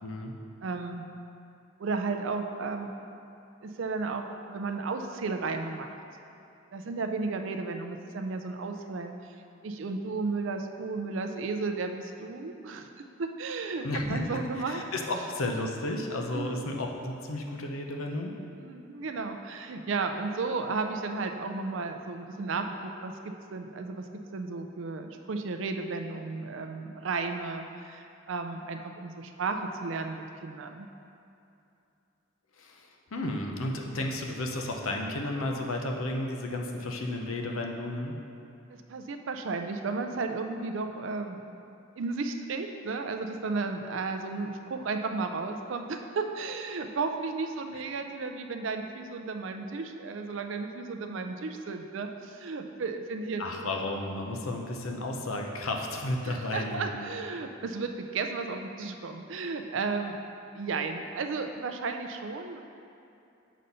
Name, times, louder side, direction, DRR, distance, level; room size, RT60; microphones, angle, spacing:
voice 1, 0.0-0.3 13.8-18.3 32.6-38.1 47.7-47.8 53.4-57.1, left 1 dB, 85° left, 2 dB, 0.7 m, -33 dB
voice 2, 0.6-1.1 1.8-2.9 3.6-5.9 6.7-9.3 9.6-14.8 16.3-16.6 18.5-30.9 38.7-53.4 56.2-60.2 60.5-62.6, right 4 dB, 65° right, 6 dB, 0.4 m, -34 dB
6.4 x 4.0 x 5.5 m, 2.7 s
head